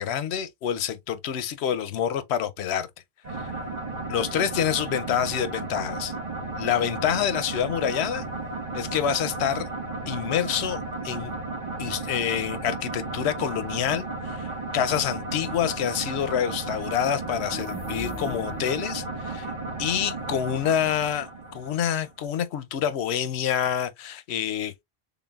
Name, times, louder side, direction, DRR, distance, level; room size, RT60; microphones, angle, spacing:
voice 1, 0.0-2.9 3.3-3.6 4.1-6.1 6.6-8.2 8.7-9.7 10.1-11.3 11.8-19.5 19.8-21.3 21.5-24.8, left 9 dB, 85° left, 0.9 m, -27 dB
sound 1, 3.2-22.1, right 3 dB, 45° right, 1.1 m, -34 dB
sound 2, 17.4-18.9, left 3 dB, ahead, 1.2 m, -40 dB
3.9 x 3.7 x 2.3 m
omnidirectional pair, 1.1 m